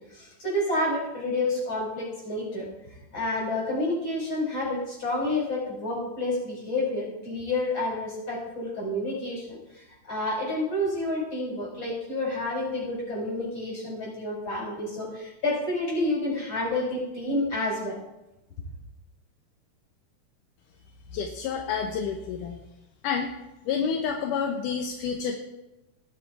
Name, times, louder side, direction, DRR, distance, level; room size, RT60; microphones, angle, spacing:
voice 1, 0.0-17.9, left 1 dB, 35° left, -4 dB, 6.8 m, -29 dB
voice 2, 21.1-22.6 23.0-23.3 23.7-25.4, left 6 dB, 80° left, 3 dB, 2.5 m, -29 dB
19.0 x 7.5 x 4.8 m, 0.96 s
omnidirectional pair, 3.7 m